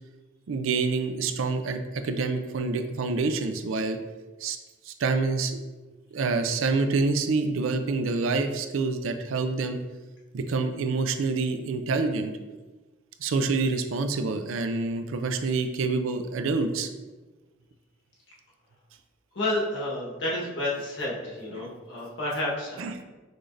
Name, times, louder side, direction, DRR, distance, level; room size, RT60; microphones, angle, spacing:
voice 1, 0.5-4.0 4.4-4.6 4.9-5.6 6.1-9.8 10.3-12.3 13.2-16.9 21.5-21.7 22.8-23.0, right 4 dB, 85° right, 7 dB, 0.4 m, -27 dB
voice 2, 19.3-23.0, left 1 dB, 65° left, -5 dB, 1.3 m, -30 dB
6.0 x 3.2 x 2.5 m, 1.2 s
head